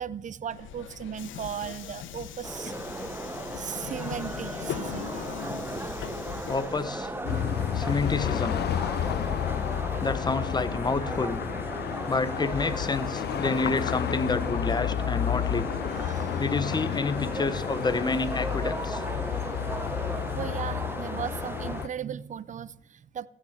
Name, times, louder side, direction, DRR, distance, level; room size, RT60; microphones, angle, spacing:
voice 1, 0.0-2.7 3.5-5.6 9.1-9.2 15.8-16.4 19.2-23.3, right 8 dB, 40° right, 0.5 m, -37 dB
Subway metro underground, 0.5-9.3, left 9 dB, 75° left, 1.0 m, -40 dB
sound 1, 2.4-21.8, right 2 dB, 10° right, 1.1 m, -36 dB
voice 2, 6.5-7.1 7.7-8.6 10.0-11.4 12.1-15.8 16.4-19.0, left 3 dB, 20° left, 0.9 m, -29 dB
sound 2, 7.2-21.9, left 11 dB, 55° left, 0.5 m, -31 dB
14.5 x 6.3 x 7.2 m
cardioid pair, 90°, 20 cm